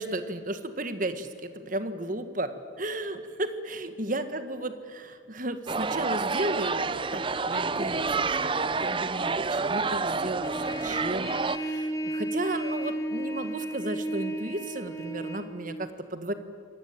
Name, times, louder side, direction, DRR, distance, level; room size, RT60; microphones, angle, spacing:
voice 1, 0.0-2.5 2.8-16.3, right 1 dB, 40° right, 10 dB, 1.6 m, -34 dB
sound 1, 5.7-11.6, right 4 dB, 25° right, 0.6 m, -29 dB
Trumpet, 10.4-15.4, right 1 dB, 15° left, 2.8 m, -33 dB
25.5 x 19.0 x 9.0 m, 2.4 s
head